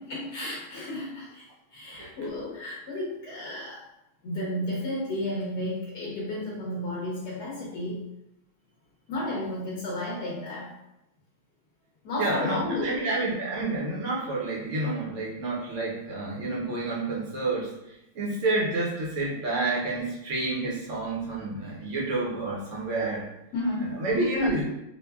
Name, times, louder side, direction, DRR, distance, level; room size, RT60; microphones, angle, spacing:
voice 1, 0.0-1.4 1.7-3.8 4.2-8.1 9.1-10.7 12.0-13.0 23.5-24.1, left 1 dB, 65° left, -5 dB, 1.2 m, -32 dB
voice 2, 12.2-17.7 18.1-23.2 23.8-24.7, right 2 dB, 55° right, -4 dB, 0.9 m, -29 dB
5.3 x 2.2 x 2.3 m, 0.85 s
omnidirectional pair, 2.2 m